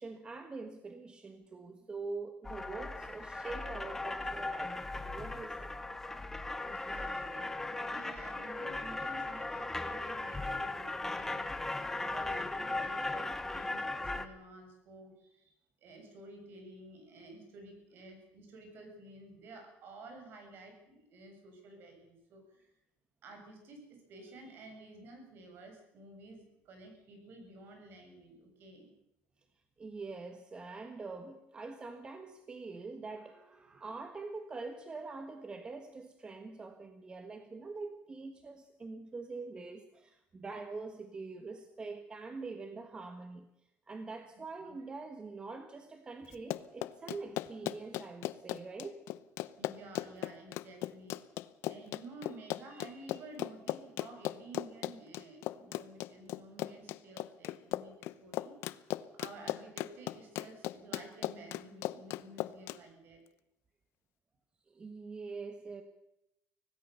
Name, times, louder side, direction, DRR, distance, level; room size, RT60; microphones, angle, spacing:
voice 1, 0.0-5.7 7.6-7.9 29.8-43.5 43.9-49.0 64.7-65.8, right 3 dB, 20° right, 8 dB, 1.5 m, -44 dB
sound 1, 2.4-14.3, left 2 dB, 10° left, 1.2 m, -38 dB
voice 2, 6.6-11.5 11.8-22.7 23.2-28.9 44.6-44.8 49.6-51.2 51.6-58.5 59.1-63.2, right 2 dB, 55° right, 4 dB, 7.5 m, -52 dB
Run, 46.3-62.8, left 15 dB, 75° left, 0.8 m, -38 dB
25.0 x 17.5 x 7.0 m, 0.84 s
cardioid pair, 150°, 4 cm